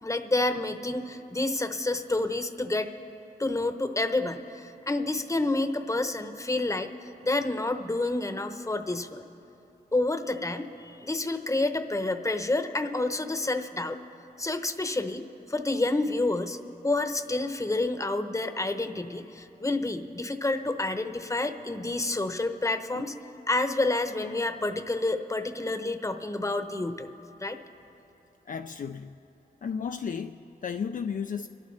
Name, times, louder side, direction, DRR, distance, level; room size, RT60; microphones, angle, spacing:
voice 1, 0.0-2.9 3.4-6.9 7.2-9.2 9.9-14.0 14.4-16.6 16.8-23.1 23.5-27.1 27.4-27.6, left 2 dB, 20° left, 8 dB, 0.8 m, -29 dB
voice 2, 28.5-29.2 29.6-31.5, left 6 dB, 55° left, 7 dB, 0.4 m, -34 dB
26.0 x 12.0 x 3.3 m, 3.0 s
cardioid pair, 70°, 16 cm